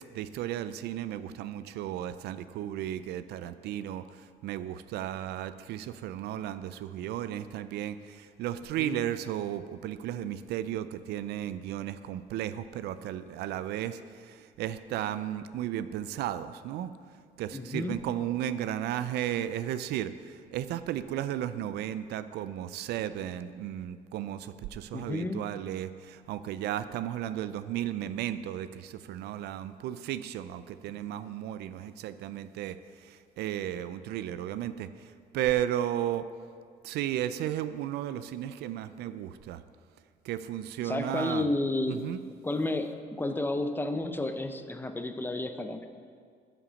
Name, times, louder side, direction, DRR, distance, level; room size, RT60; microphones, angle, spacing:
voice 1, 0.1-16.9 17.4-36.3 36.8-39.6 40.2-41.5 41.9-42.2, right 11 dB, 75° right, 13 dB, 0.4 m, -34 dB
voice 2, 17.5-18.0 24.9-25.4 40.8-42.1 42.4-45.9, left 2 dB, 10° left, 7 dB, 0.6 m, -31 dB
9.2 x 5.9 x 6.9 m, 2.1 s
cardioid pair, 110°, 17 cm